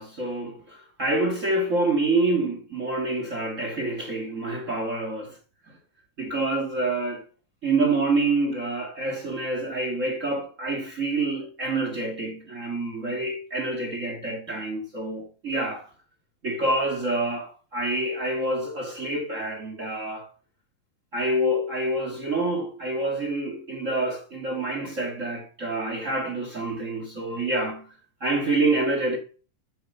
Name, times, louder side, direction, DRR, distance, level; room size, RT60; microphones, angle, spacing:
voice 1, 0.0-5.4 6.2-7.2 7.6-15.9 16.4-20.3 21.1-27.9 28.2-29.2, right 2 dB, 40° right, 1.2 m, -27 dB
8.6 x 7.9 x 6.8 m
omnidirectional pair, 3.9 m